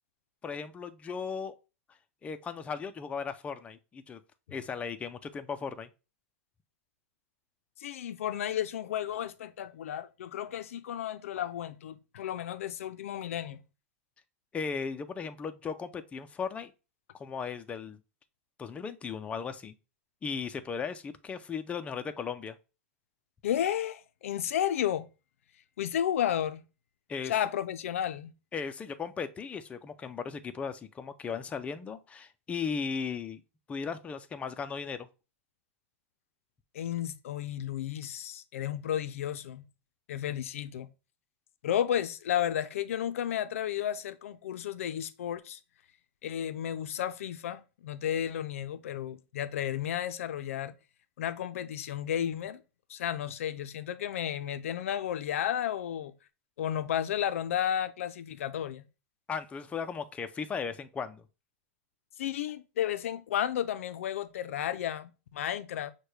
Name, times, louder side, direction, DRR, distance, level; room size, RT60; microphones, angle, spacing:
voice 1, 0.4-1.5 2.2-4.2 4.5-5.9 14.5-16.7 17.1-18.0 18.6-19.7 20.2-22.6 27.1-27.3 28.5-33.4 33.7-35.1 59.3-61.2, left 6 dB, 15° left, 0.4 m, -36 dB
voice 2, 7.8-13.6 23.4-25.1 25.8-26.6 27.3-28.3 36.7-39.7 40.1-40.9 41.6-45.6 46.2-50.7 51.2-52.6 52.9-56.1 56.6-58.8 62.2-65.9, left 10 dB, 80° left, 0.5 m, -32 dB
6.2 x 2.2 x 3.2 m
hypercardioid pair, 125°, 7 cm